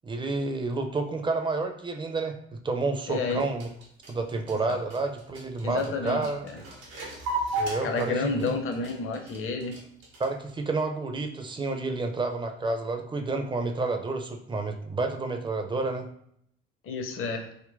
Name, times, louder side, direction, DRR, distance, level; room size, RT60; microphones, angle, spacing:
voice 1, 0.0-3.7 4.1-6.5 7.6-8.3 10.2-16.1, right 3 dB, 15° right, 5 dB, 0.5 m, -30 dB
voice 2, 3.1-3.4 4.7-4.8 5.6-6.2 7.8-9.8 16.8-17.5, left 4 dB, 45° left, 4 dB, 0.7 m, -30 dB
sound 1, 3.3-10.5, right 2 dB, 85° right, 0.9 m, -35 dB
3.7 x 2.1 x 2.5 m, 0.70 s
hypercardioid pair, 55°, 30 cm